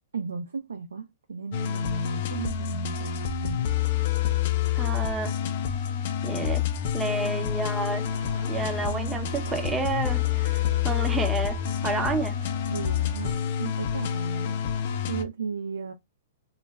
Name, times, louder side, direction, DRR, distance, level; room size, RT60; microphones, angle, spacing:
voice 1, 0.1-3.7 7.0-7.4 12.7-14.6 15.1-15.9, right 5 dB, 90° right, 0.4 m, -35 dB
sound 1, 1.5-15.2, left 9 dB, 55° left, 0.4 m, -28 dB
voice 2, 4.8-5.3 6.2-6.7 6.9-8.1 8.5-12.4, right 3 dB, 10° right, 0.6 m, -30 dB
sound 2, 8.0-13.3, right 4 dB, 65° right, 0.8 m, -44 dB
2.2 x 2.1 x 3.3 m
hypercardioid pair, 130°, 0 cm